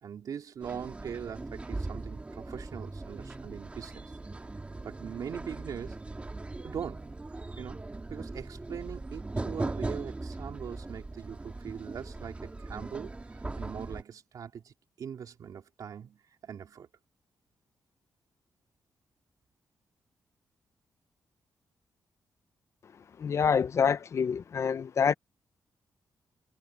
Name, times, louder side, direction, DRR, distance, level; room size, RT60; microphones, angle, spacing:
voice 1, 0.0-4.1 4.8-6.0 6.6-7.1 7.6-7.8 8.1-13.1 13.6-16.9, right 8 dB, 65° right, 3.5 m, -41 dB
sound 1, 0.6-14.0, right 2 dB, 20° right, 2.1 m, -39 dB
voice 2, 23.2-25.1, left 6 dB, 45° left, 0.6 m, -26 dB
wide cardioid pair, 145°, 7 cm